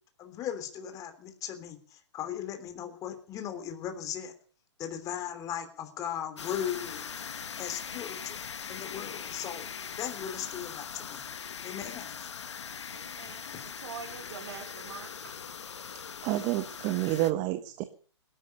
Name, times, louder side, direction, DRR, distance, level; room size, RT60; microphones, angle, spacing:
voice 1, 0.2-4.3 4.8-7.1 7.3-9.7 10.0-11.2 11.6-12.3 13.2-13.7, left 9 dB, 20° left, 7 dB, 3.2 m, -38 dB
sound 1, 6.4-17.3, left 7 dB, 75° left, 1.7 m, -41 dB
voice 2, 12.9-15.3, right 6 dB, 65° right, 2 dB, 4.2 m, -45 dB
voice 3, 16.2-17.8, right 15 dB, 30° right, 9 dB, 1.3 m, -29 dB
18.5 x 11.5 x 6.6 m, 0.43 s
hypercardioid pair, 140°, 15 cm